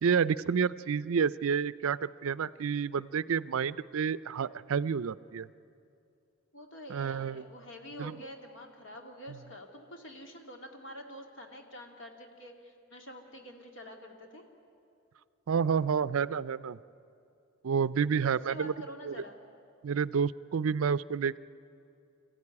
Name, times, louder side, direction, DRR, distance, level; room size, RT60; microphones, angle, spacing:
voice 1, 0.0-5.5 6.9-7.4 8.0-8.1 9.3-9.4 15.5-16.8 17.6-18.7 19.0-19.1 19.8-21.4, right 6 dB, 75° right, 17 dB, 0.4 m, -29 dB
voice 2, 6.5-14.4 18.2-19.4, equal, 60° left, 2 dB, 2.4 m, -47 dB
25.0 x 14.5 x 9.7 m, 2.6 s
head